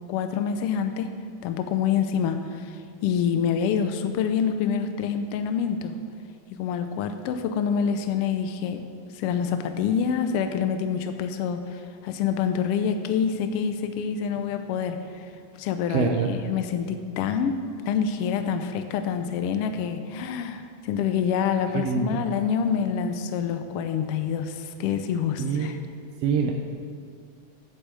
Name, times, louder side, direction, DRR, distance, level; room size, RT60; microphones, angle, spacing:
voice 1, 0.1-1.2 1.4-6.0 6.5-8.8 9.1-15.2 15.6-25.8, left 7 dB, 90° left, 8 dB, 1.3 m, -27 dB
voice 2, 15.9-16.3 21.7-22.2 25.4-25.9 26.2-26.5, right 6 dB, 75° right, 2 dB, 1.6 m, -25 dB
8.3 x 8.1 x 7.5 m, 2.2 s
omnidirectional pair, 3.3 m